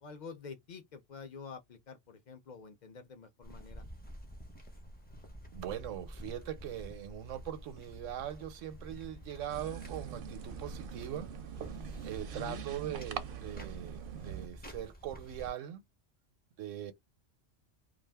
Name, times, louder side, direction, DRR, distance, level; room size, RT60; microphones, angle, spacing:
voice 1, 0.0-3.8 12.3-12.6, left 5 dB, 50° left, 0.5 m, -48 dB
sound 1, 3.4-15.5, equal, 10° left, 0.6 m, -49 dB
voice 2, 5.5-11.3 12.0-15.8 16.6-16.9, right 11 dB, 90° right, 1.0 m, -41 dB
sound 2, 9.5-14.5, right 8 dB, 60° right, 0.6 m, -43 dB
2.5 x 2.3 x 3.4 m
omnidirectional pair, 1.3 m